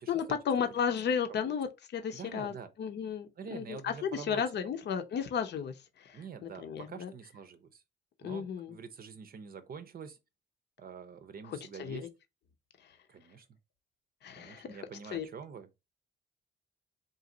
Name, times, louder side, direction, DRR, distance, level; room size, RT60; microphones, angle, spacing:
voice 1, 0.1-2.5 2.8-7.1 8.2-8.8 11.5-12.1 14.2-14.8 15.1-15.3, left 7 dB, 60° left, 0.7 m, -34 dB
voice 2, 2.1-2.7 3.4-4.9 6.1-7.8 8.2-10.2 10.8-12.1 13.1-13.5 14.4-15.7, right 6 dB, 50° right, 0.6 m, -46 dB
4.0 x 2.5 x 3.8 m
cardioid pair, 90°, 20 cm